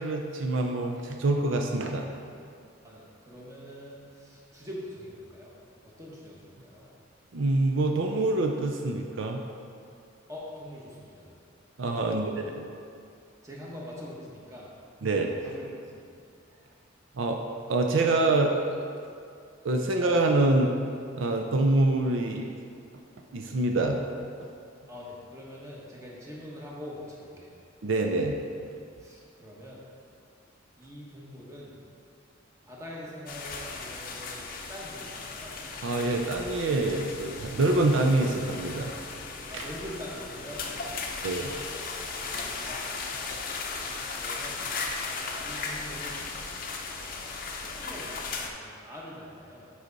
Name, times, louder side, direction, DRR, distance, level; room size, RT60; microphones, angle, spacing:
voice 1, 0.0-2.1 7.3-9.4 11.8-12.3 12.6-12.7 15.0-15.3 17.1-17.4 17.7-18.9 19.6-20.7 21.1-22.5 23.3-24.0 27.8-28.4 35.8-38.9 39.5-39.7 41.2-41.5, right 2 dB, 75° right, 2 dB, 0.5 m, -25 dB
voice 2, 2.8-5.5 6.0-6.9 10.3-11.3 12.1-12.5 13.4-14.7 15.4-15.7 15.9-16.1 24.9-27.5 29.0-29.8 30.8-31.8 32.6-35.6 39.5-40.7 42.1-42.8 43.8-44.6 45.4-46.2 47.1-49.7, equal, 15° right, -5 dB, 1.2 m, -44 dB
sound 1, 33.3-48.5, left 4 dB, 45° left, 0.6 m, -36 dB
8.0 x 4.9 x 4.0 m, 2.3 s
head